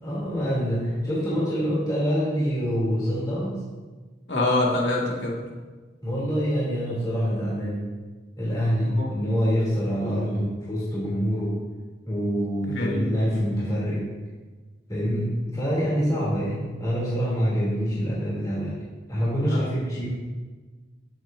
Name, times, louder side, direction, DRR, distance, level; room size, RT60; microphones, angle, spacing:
voice 1, 0.0-3.6 6.0-7.8 8.4-11.6 12.1-14.1 14.9-18.7 19.1-20.1, equal, 20° left, -8 dB, 3.1 m, -25 dB
voice 2, 4.3-5.4 8.8-9.1 12.6-13.1 19.4-19.6, left 2 dB, 90° left, -3 dB, 2.2 m, -25 dB
20.0 x 7.4 x 2.7 m, 1.3 s
head